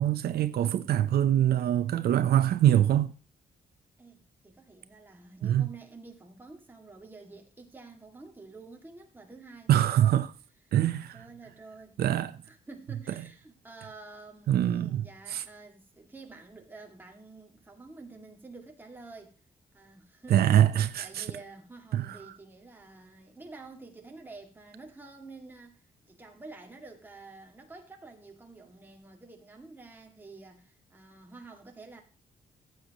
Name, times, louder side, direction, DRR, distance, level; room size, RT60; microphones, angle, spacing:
voice 1, 0.0-3.1 5.4-5.7 9.7-10.3 10.7-11.2 12.0-12.3 14.5-15.0 15.3-15.4 20.3-21.3 21.9-22.2, right 11 dB, 90° right, 0.7 m, -24 dB
voice 2, 4.0-10.2 11.1-12.0 12.4-19.3 19.7-20.4 20.7-32.0, right 3 dB, 10° right, 2.1 m, -49 dB
15.5 x 8.0 x 3.0 m
wide cardioid pair, 170°, 16 cm